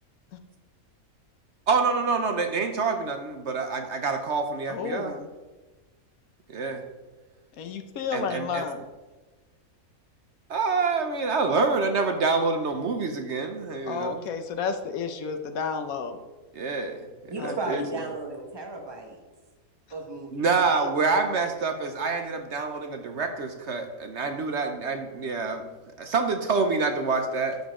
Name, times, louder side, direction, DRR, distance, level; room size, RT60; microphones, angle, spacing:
voice 1, 1.7-5.2 6.5-6.8 8.1-8.6 10.5-14.2 16.5-17.1 17.4-17.8 20.3-25.7 26.0-27.6, right 4 dB, 55° right, 6 dB, 1.0 m, -26 dB
voice 2, 4.7-5.3 7.6-8.9 13.8-16.2 17.4-17.8, left 6 dB, 75° left, 8 dB, 1.3 m, -32 dB
voice 3, 17.3-19.2 19.9-20.6, right 3 dB, 20° right, 1 dB, 1.4 m, -35 dB
11.5 x 7.2 x 3.7 m, 1.2 s
omnidirectional pair, 1.5 m